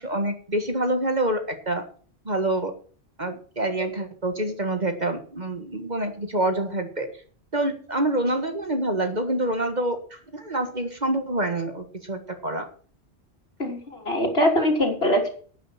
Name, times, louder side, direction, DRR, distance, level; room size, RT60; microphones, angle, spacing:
voice 1, 0.0-1.8 2.3-2.8 3.2-7.1 7.5-12.7, right 1 dB, 40° right, 7 dB, 1.7 m, -26 dB
voice 2, 13.6-15.3, equal, 55° left, 2 dB, 3.7 m, -22 dB
11.0 x 9.3 x 5.8 m, 0.43 s
omnidirectional pair, 1.2 m